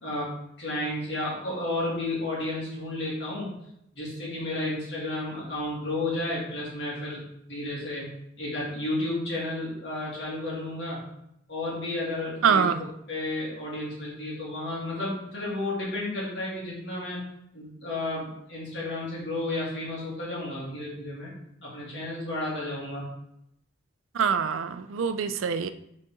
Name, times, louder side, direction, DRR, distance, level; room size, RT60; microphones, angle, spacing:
voice 1, 0.0-3.5 3.9-7.2 7.5-8.1 8.4-11.1 11.5-12.7 13.1-17.3 17.5-21.3 21.6-23.1, left 2 dB, 60° left, -6 dB, 2.5 m, -32 dB
voice 2, 12.4-12.9 24.1-25.7, right 6 dB, 90° right, 11 dB, 0.5 m, -24 dB
6.6 x 4.2 x 3.7 m, 0.75 s
head